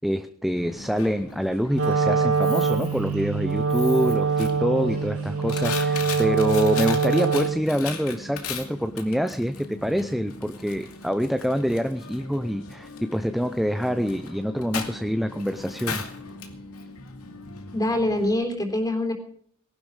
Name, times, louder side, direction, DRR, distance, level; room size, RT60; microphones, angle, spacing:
voice 1, 0.0-16.0, equal, ahead, 9 dB, 0.6 m, -26 dB
Coin (dropping), 0.5-18.3, left 4 dB, 85° left, 2.6 m, -38 dB
Wind instrument woodwind instrument, 1.7-7.7, right 5 dB, 80° right, 2.2 m, -24 dB
voice 2, 17.7-19.1, left 1 dB, 15° left, 4 dB, 3.6 m, -24 dB
19.0 x 11.5 x 4.9 m, 0.62 s
head